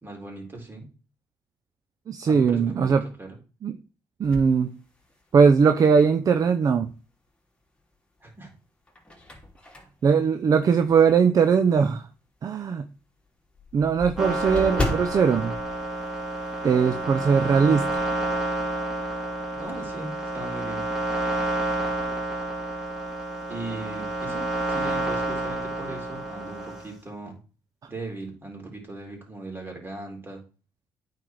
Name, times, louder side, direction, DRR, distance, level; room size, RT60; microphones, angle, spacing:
voice 1, 0.0-0.9 2.2-3.4 8.2-8.5 10.6-10.8 19.5-20.8 23.5-27.4 27.9-30.4, right 2 dB, 25° right, 4.2 m, -39 dB
voice 2, 2.1-3.0 3.6-3.7 4.2-4.7 5.3-6.9 10.0-12.0 12.4-12.9 13.7-15.6 16.6-18.0, right 6 dB, 50° right, 0.7 m, -20 dB
sound 1, 4.2-5.6 6.1-6.2 7.7-8.2 8.7-11.3 11.7-11.9 12.2-12.3 12.6-12.7 13.0-16.8 17.0-17.2 17.6-18.2, left 2 dB, 15° left, 3.0 m, -35 dB
sound 2, 14.2-26.9, right 1 dB, 5° right, 3.3 m, -29 dB
9.2 x 4.8 x 4.7 m
supercardioid pair, 70°, 8 cm